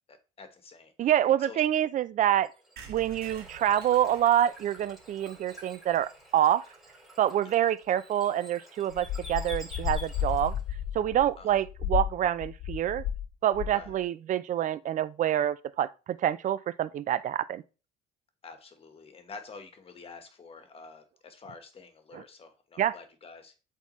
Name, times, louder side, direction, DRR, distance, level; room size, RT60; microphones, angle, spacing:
voice 1, 0.1-0.9 1.4-1.6 7.4-7.7 11.4-11.6 13.7-14.0 18.4-23.5, left 4 dB, 35° left, 1.3 m, -48 dB
voice 2, 1.0-2.5 2.9-6.6 7.2-10.6 10.9-13.0 13.4-17.6 22.1-22.2 22.8-22.9, right 11 dB, 50° right, 0.5 m, -26 dB
Bird / Water, 2.3-10.7, equal, ahead, 3.8 m, -50 dB
sound 1, 2.8-6.4 6.9-7.0 7.2-7.3 7.5-7.6 7.8-8.0, right 6 dB, 70° right, 2.0 m, -51 dB
sound 2, 8.9-13.3 13.5-13.9, left 10 dB, 70° left, 0.9 m, -33 dB
8.1 x 3.7 x 3.1 m
cardioid pair, 110°, 17 cm